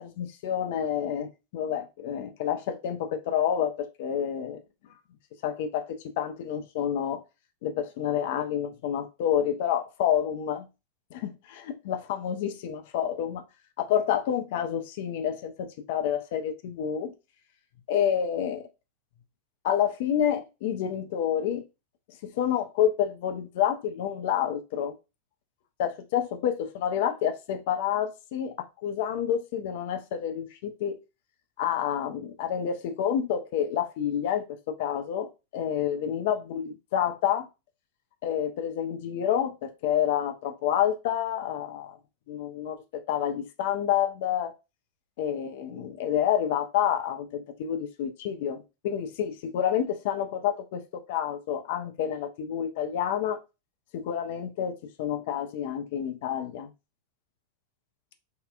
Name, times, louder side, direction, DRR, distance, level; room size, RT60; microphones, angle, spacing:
voice 1, 0.0-4.6 5.4-7.2 7.6-10.7 11.1-13.4 13.8-17.1 17.9-18.7 19.6-21.6 22.2-24.9 25.8-28.6 28.8-31.0 31.6-37.5 38.2-42.0 42.3-44.5 45.2-53.4 53.9-56.7, left 9 dB, 50° left, 0.4 m, -29 dB
3.6 x 2.2 x 2.3 m
figure-of-eight pair, 90°, 0 cm